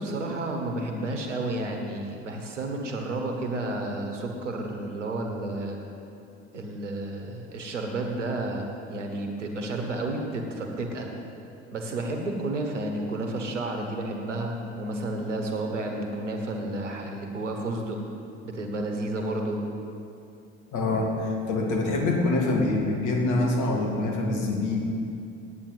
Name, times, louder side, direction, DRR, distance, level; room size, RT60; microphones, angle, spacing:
voice 1, 0.0-5.8 6.5-11.1 11.7-18.0 18.4-19.6, right 2 dB, 90° right, 3 dB, 1.2 m, -31 dB
voice 2, 20.7-24.9, left 2 dB, 60° left, 1 dB, 2.1 m, -25 dB
9.1 x 8.9 x 7.4 m, 2.7 s
hypercardioid pair, 60°, 35 cm